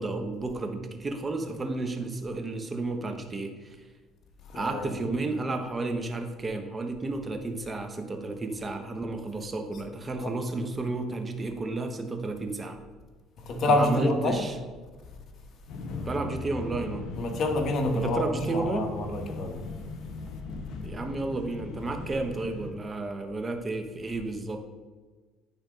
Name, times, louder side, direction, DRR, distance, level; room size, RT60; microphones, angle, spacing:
voice 1, 0.0-3.8 4.5-12.8 13.6-14.5 16.1-17.1 17.9-18.9 20.8-24.6, right 2 dB, 25° right, 5 dB, 0.9 m, -32 dB
voice 2, 4.5-4.9 10.2-10.3 13.4-14.5 15.8-16.1 17.2-19.7, left 2 dB, 50° left, 3 dB, 1.3 m, -28 dB
sound 1, 15.7-22.7, left 3 dB, 70° left, 0.9 m, -39 dB
9.2 x 3.4 x 5.1 m, 1.4 s
cardioid pair, 115°, 0 cm